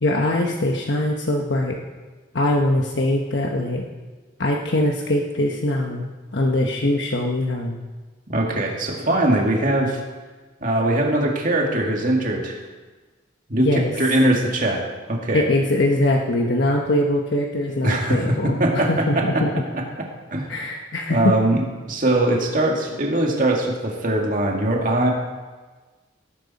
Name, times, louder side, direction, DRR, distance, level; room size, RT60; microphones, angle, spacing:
voice 1, 0.0-1.8 2.3-3.8 4.4-7.8 13.6-13.9 15.3-19.5 20.5-21.3, left 1 dB, 70° left, 0 dB, 1.2 m, -22 dB
voice 2, 8.3-10.0 10.6-12.6 13.5-14.8 15.1-15.4 17.8-19.4 20.3-20.5 21.1-21.6 21.9-25.1, right 1 dB, 45° right, 0 dB, 2.2 m, -21 dB
18.0 x 10.5 x 4.2 m, 1.3 s
head